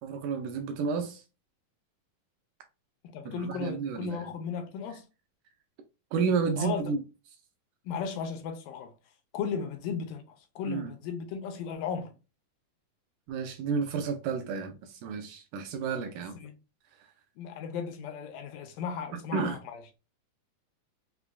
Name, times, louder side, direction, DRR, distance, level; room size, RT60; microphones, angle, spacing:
voice 1, 0.0-1.2 3.3-4.3 6.1-7.0 10.7-10.9 13.3-16.4 19.3-19.6, right 5 dB, 80° right, 1.9 m, -31 dB
voice 2, 3.0-5.0 6.6-6.8 7.9-8.9 9.3-10.2 10.6-12.1 16.4-16.5 17.4-19.8, left 6 dB, 80° left, 2.1 m, -35 dB
5.9 x 2.2 x 2.3 m
omnidirectional pair, 4.1 m